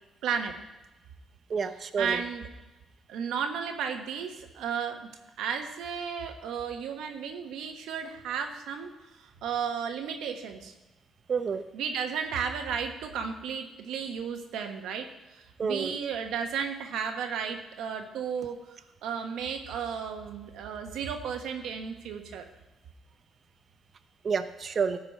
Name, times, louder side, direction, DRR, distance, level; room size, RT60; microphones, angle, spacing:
voice 1, 0.2-0.5 2.0-2.5 3.1-5.1 5.4-8.9 9.4-10.7 11.7-15.1 15.3-18.6 19.0-22.5, right 7 dB, 85° right, 4 dB, 1.4 m, -33 dB
voice 2, 1.5-2.2 11.3-11.6 15.6-16.0 24.2-25.0, right 5 dB, 50° right, 10 dB, 0.9 m, -29 dB
14.0 x 5.1 x 7.4 m, 1.0 s
cardioid pair, 90°, 0 cm